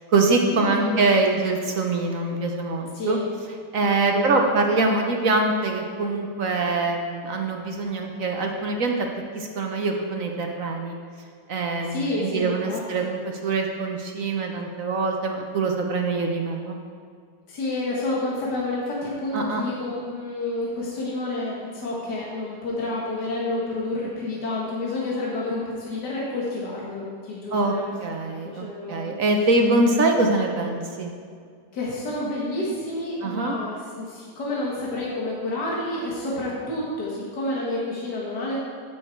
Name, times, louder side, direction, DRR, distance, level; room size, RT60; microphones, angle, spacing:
voice 1, 0.0-3.2 3.7-9.1 9.3-10.9 11.5-16.8 19.3-19.6 27.5-27.7 28.0-31.1 33.2-33.6, right 3 dB, 55° right, 2 dB, 1.2 m, -24 dB
voice 2, 0.5-0.9 2.9-3.2 4.0-4.4 11.8-12.8 17.5-27.8 28.1-29.1 31.7-38.6, left 2 dB, 70° left, -5 dB, 2.1 m, -29 dB
15.5 x 6.1 x 4.5 m, 2.1 s
omnidirectional pair, 1.9 m